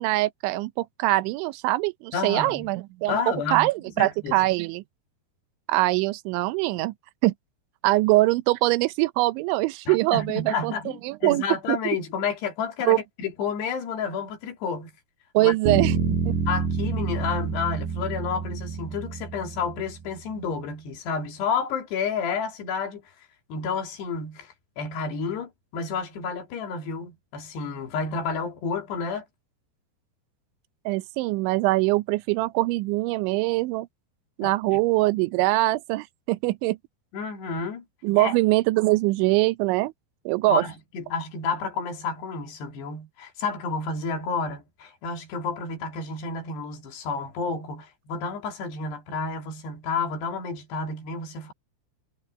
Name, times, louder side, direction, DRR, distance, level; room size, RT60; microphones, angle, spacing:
voice 1, 0.0-4.8 5.7-6.9 7.2-7.3 7.8-10.7 11.0-12.0 12.9-13.0 15.3-16.0 16.2-16.3 30.9-33.9 34.4-36.8 38.0-39.9 40.3-40.6, right 20 dB, 85° right, 3.2 m, -23 dB
voice 2, 2.1-2.7 3.1-3.7 4.0-4.4 9.9-14.9 15.4-15.5 16.5-23.0 23.5-29.2 34.4-34.8 37.1-37.8 38.2-38.4 40.4-51.5, left 5 dB, 65° left, 4.7 m, -30 dB
Bass guitar, 15.7-20.0, right 5 dB, 70° right, 3.4 m, -27 dB
omnidirectional pair, 5.3 m